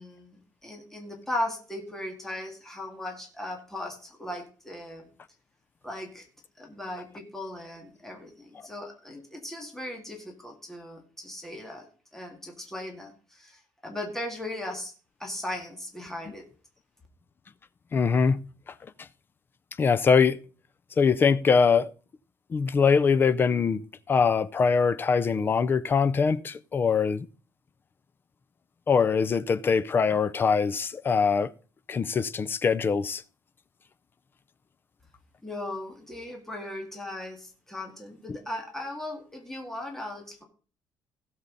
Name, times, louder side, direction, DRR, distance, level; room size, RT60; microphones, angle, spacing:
voice 1, 0.0-5.1 5.8-6.2 6.6-11.9 12.1-14.9 15.2-16.4 35.4-40.4, left 1 dB, 5° left, 2.0 m, -37 dB
voice 2, 17.9-18.4 19.8-20.4 21.0-21.9 22.5-23.8 24.1-27.3 28.9-31.5 31.9-33.2, left 5 dB, 25° left, 0.5 m, -23 dB
16.5 x 7.0 x 4.0 m
cardioid pair, 165°, 8 cm